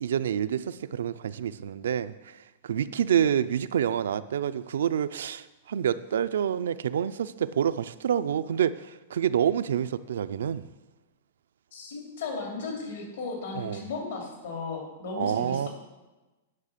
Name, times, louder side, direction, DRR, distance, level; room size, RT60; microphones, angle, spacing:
voice 1, 0.0-10.7 13.6-13.8 15.2-15.7, right 9 dB, 85° right, 13 dB, 0.4 m, -28 dB
voice 2, 11.7-15.7, left 4 dB, 75° left, 0 dB, 3.0 m, -35 dB
9.6 x 5.7 x 6.7 m, 1.1 s
hypercardioid pair, 150°, 0 cm